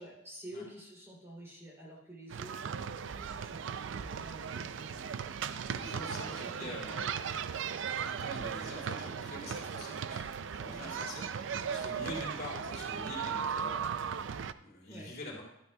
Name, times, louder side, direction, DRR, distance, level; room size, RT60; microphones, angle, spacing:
voice 1, 0.0-5.2 6.0-7.4 10.7-11.0 14.9-15.1, right 1 dB, 15° right, -3 dB, 2.9 m, -50 dB
sound 1, 2.3-14.5, right 7 dB, 65° right, 0.4 m, -37 dB
voice 2, 5.7-7.2 8.0-11.2 11.6-15.4, left 1 dB, 50° left, -3 dB, 2.9 m, -45 dB
12.5 x 12.0 x 2.3 m, 0.81 s
head